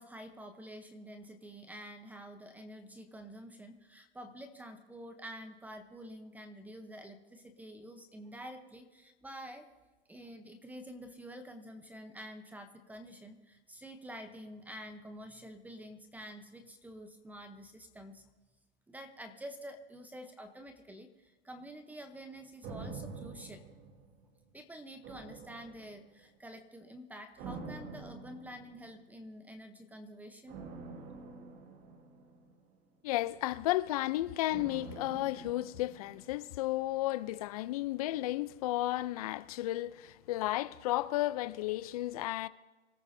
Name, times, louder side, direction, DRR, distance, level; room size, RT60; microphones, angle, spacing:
voice 1, 0.0-9.7 10.1-18.2 18.9-23.6 24.5-30.6, equal, 5° right, 0.7 m, -48 dB
sound 1, 22.6-24.5 25.0-26.3 27.4-29.1 30.5-32.9 34.5-36.7 36.9-37.0, right 4 dB, 25° right, 1.4 m, -47 dB
voice 2, 33.0-42.5, left 16 dB, 35° left, 0.5 m, -33 dB
25.0 x 13.0 x 2.7 m
hypercardioid pair, 135°, 33 cm